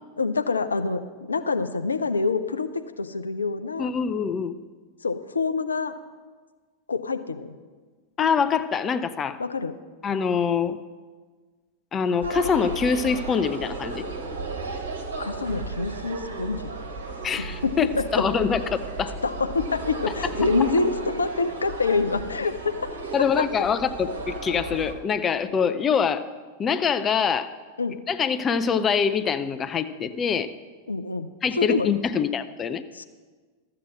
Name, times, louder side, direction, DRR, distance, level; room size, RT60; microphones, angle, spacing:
voice 1, 0.2-2.7 3.0-3.9 5.0-5.9 6.9-7.5 9.4-9.7 15.2-16.7 17.6-18.3 19.2-22.9 23.4-23.5 27.8-28.0 30.9-31.9 32.9-33.0, left 4 dB, 75° left, 9 dB, 0.6 m, -26 dB
voice 2, 3.8-4.5 8.2-9.4 10.0-10.8 11.9-14.0 17.2-17.9 18.1-19.2 23.1-26.3 26.6-27.5 28.1-30.5 31.4-32.8, left 6 dB, 25° left, 11 dB, 0.5 m, -24 dB
sound 1, 12.2-24.9, right 3 dB, 70° right, 1.4 m, -34 dB
13.0 x 7.7 x 6.3 m, 1.4 s
figure-of-eight pair, 90°, 0 cm